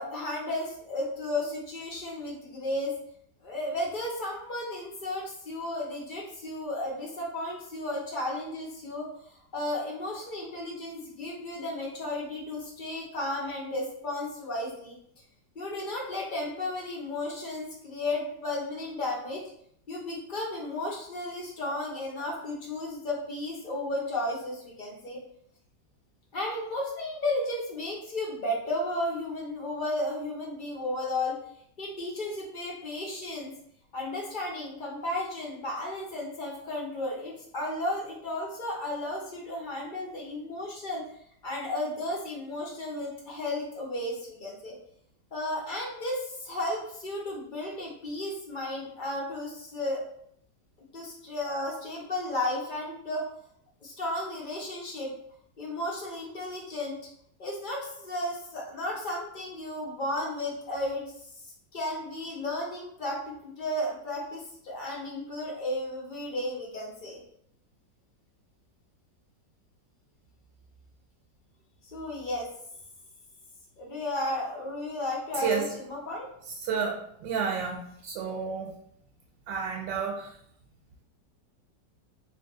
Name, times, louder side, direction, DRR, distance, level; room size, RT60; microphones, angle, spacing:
voice 1, 0.0-3.0 3.4-15.0 15.5-19.4 19.9-25.2 26.3-31.4 31.8-33.5 33.9-41.0 41.4-44.8 45.3-50.0 50.9-53.2 53.8-55.1 55.6-57.0 57.4-61.1 61.7-67.2 71.9-72.5 73.8-76.3, left 1 dB, 60° left, -3 dB, 0.5 m, -33 dB
voice 2, 76.6-78.7 79.5-80.3, right 6 dB, 85° right, 0 dB, 1.3 m, -31 dB
3.1 x 2.6 x 3.7 m, 0.69 s
omnidirectional pair, 1.9 m